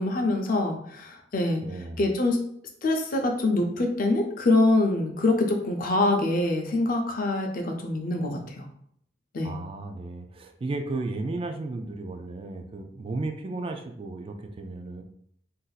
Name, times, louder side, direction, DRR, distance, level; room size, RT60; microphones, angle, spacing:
voice 1, 0.0-1.6 2.0-2.4 2.8-8.7 9.3-9.5, left 2 dB, 50° left, 3 dB, 0.6 m, -25 dB
voice 2, 1.6-2.0 9.4-15.0, right 2 dB, 30° right, 5 dB, 0.3 m, -34 dB
2.6 x 2.4 x 3.9 m, 0.69 s
head